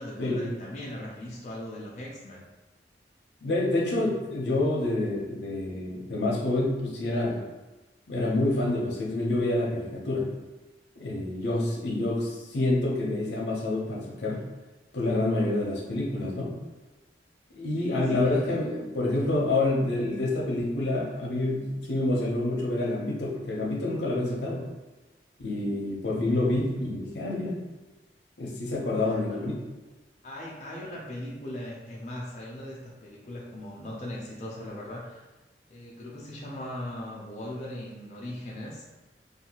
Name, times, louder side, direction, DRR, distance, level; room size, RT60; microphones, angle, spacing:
voice 1, 0.0-2.4 17.8-18.6 28.9-29.5 30.2-35.3 35.7-38.9, left 1 dB, 40° left, -4 dB, 0.4 m, -39 dB
voice 2, 3.4-7.4 8.1-10.3 11.0-14.4 14.9-16.5 17.5-24.7 25.4-27.6 28.4-29.6, left 2 dB, 80° left, -2 dB, 0.6 m, -27 dB
2.6 x 2.3 x 2.8 m, 1.1 s
head